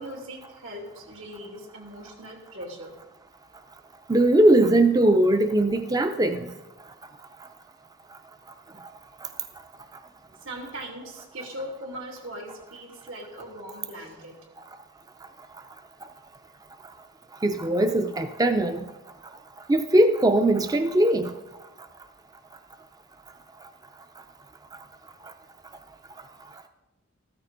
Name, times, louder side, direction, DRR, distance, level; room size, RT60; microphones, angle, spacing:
voice 1, 0.0-2.9 10.4-14.4, equal, 85° right, 0 dB, 2.5 m, -39 dB
voice 2, 4.1-6.5 17.4-18.8 19.7-21.3, right 1 dB, 20° right, 7 dB, 0.5 m, -20 dB
13.5 x 13.5 x 3.9 m, 1.0 s
head